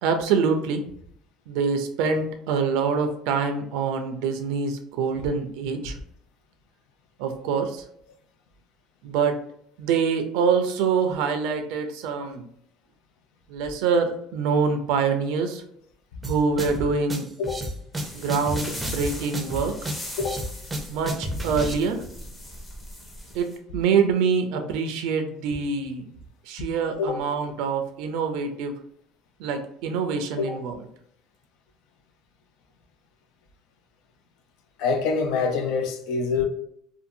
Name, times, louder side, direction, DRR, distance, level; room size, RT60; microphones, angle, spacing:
voice 1, 0.0-0.9 1.5-6.0 7.2-7.8 9.0-9.4 9.8-12.5 13.5-15.6 16.2-17.3 18.1-19.7 20.9-22.0 23.3-26.1 26.5-28.8 29.4-30.8, right 5 dB, 80° right, 0.4 m, -25 dB
sound 1, 16.2-21.7, right 1 dB, 15° right, 0.5 m, -31 dB
voice 2, 17.4-17.7 20.2-20.5 27.0-27.2 30.4-30.6 34.8-36.4, left 5 dB, 75° left, 0.4 m, -26 dB
sound 2, 17.9-23.6, equal, 20° left, 0.8 m, -40 dB
2.6 x 2.4 x 2.6 m
cardioid pair, 120°, 0 cm